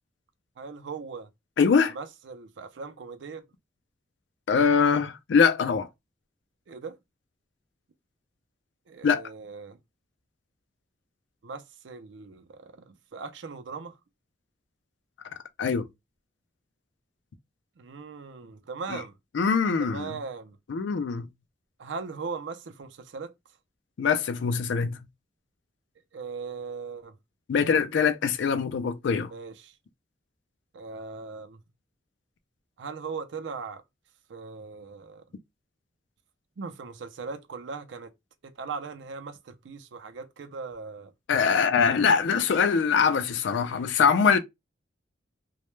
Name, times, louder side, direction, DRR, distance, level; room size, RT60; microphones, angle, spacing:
voice 1, 0.6-1.3 1.9-3.4 6.7-7.0 8.9-9.8 11.4-13.9 17.8-19.2 19.8-20.6 21.8-23.3 26.1-27.1 29.3-29.7 30.7-31.6 32.8-33.8 34.3-35.2 36.6-38.1 38.6-41.1, right 5 dB, 80° right, 0.4 m, -39 dB
voice 2, 1.6-1.9 4.5-5.9 9.0-9.2 15.6-15.9 18.9-19.0 19.3-20.1 20.7-21.3 24.0-25.0 27.5-29.3 41.3-44.4, left 6 dB, 75° left, 0.4 m, -23 dB
2.1 x 2.1 x 3.0 m
head